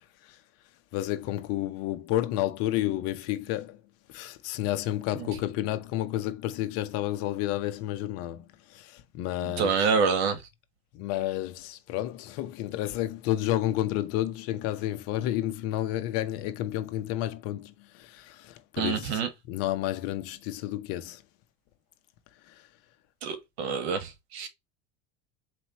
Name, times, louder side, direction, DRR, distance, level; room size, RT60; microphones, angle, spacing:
voice 1, 0.9-3.8 4.1-8.5 8.7-9.9 10.9-19.2 19.5-21.2, left 13 dB, 50° left, 0.7 m, -31 dB
voice 2, 9.4-10.4 18.8-19.3 23.2-24.5, right 5 dB, 80° right, 1.4 m, -27 dB
4.2 x 3.0 x 2.9 m
supercardioid pair, 150°, 31 cm